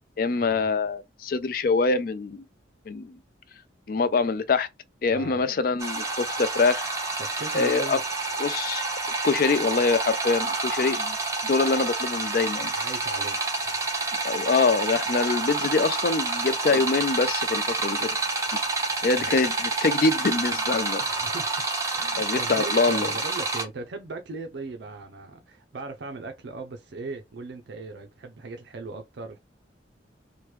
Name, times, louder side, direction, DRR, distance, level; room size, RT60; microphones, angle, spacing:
voice 1, 0.2-2.5 2.9-3.2 3.9-4.7 5.0-6.8 7.5-8.0 8.4-8.8 9.2-11.2 11.4-12.7 14.2-18.2 18.5-18.7 19.0-21.0 22.2-23.1, left 4 dB, 50° left, 0.4 m, -24 dB
voice 2, 5.1-5.4 7.2-8.0 12.6-13.8 19.2-19.4 21.0-21.7 21.9-29.4, right 3 dB, 65° right, 0.5 m, -39 dB
sound 1, 5.8-23.6, right 3 dB, 15° right, 0.7 m, -28 dB
3.0 x 2.1 x 3.2 m
head